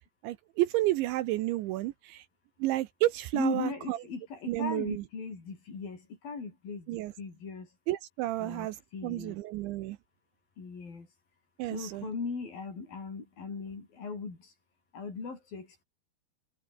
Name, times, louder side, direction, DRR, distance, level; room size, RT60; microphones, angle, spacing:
voice 1, 0.2-2.3 2.6-4.0 4.5-5.0 6.9-7.1 7.9-10.0 11.6-12.1, right 16 dB, 75° right, 3.0 m, -31 dB
voice 2, 3.3-6.9 7.2-7.7 8.4-8.7 8.9-9.4 10.6-11.1 11.7-14.5 14.9-15.8, left 4 dB, 45° left, 7.3 m, -38 dB
omnidirectional pair, 5.7 m